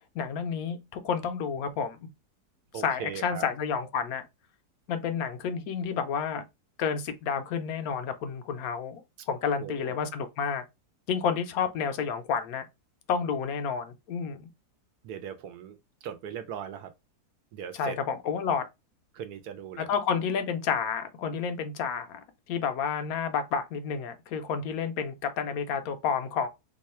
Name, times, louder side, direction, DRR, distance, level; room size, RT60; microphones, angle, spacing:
voice 1, 0.1-2.0 2.7-4.2 4.9-6.4 6.8-9.0 9.3-10.6 11.1-12.6 13.1-14.5 17.7-18.6 19.8-22.2 22.5-26.5, left 6 dB, 70° left, 1.0 m, -30 dB
voice 2, 2.7-3.4 9.6-10.0 15.0-15.8 16.0-16.9 17.5-18.0 19.1-19.9, right 8 dB, 75° right, 1.1 m, -39 dB
3.0 x 2.3 x 4.2 m
omnidirectional pair, 1.7 m